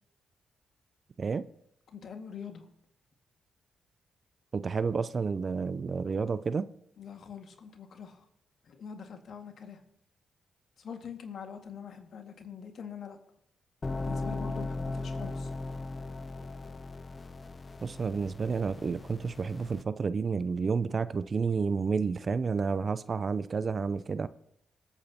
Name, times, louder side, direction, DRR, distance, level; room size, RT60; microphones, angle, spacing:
voice 1, 1.9-2.7 7.0-8.2 8.6-9.8 10.8-13.2 14.0-15.5, left 7 dB, 65° left, 1.8 m, -44 dB
voice 2, 4.5-6.7 17.8-24.3, right 5 dB, 50° right, 0.5 m, -30 dB
sound 1, 13.8-19.8, left 3 dB, 35° left, 0.7 m, -38 dB
25.5 x 8.8 x 2.9 m
hypercardioid pair, 40°, 0 cm